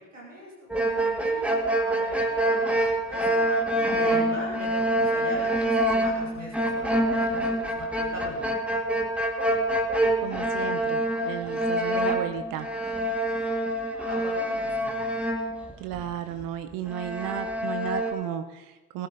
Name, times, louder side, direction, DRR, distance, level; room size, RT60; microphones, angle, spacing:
voice 1, 0.1-0.5 0.8-8.5 13.9-15.0, equal, 90° right, -4 dB, 2.7 m, -41 dB
sound 1, 0.7-16.1 16.4-16.5 16.9-18.1, right 1 dB, 5° right, 1.9 m, -26 dB
voice 2, 10.2-12.7 15.8-19.1, right 11 dB, 65° right, 9 dB, 0.9 m, -34 dB
18.5 x 9.5 x 4.0 m, 1.1 s
figure-of-eight pair, 40°, 36 cm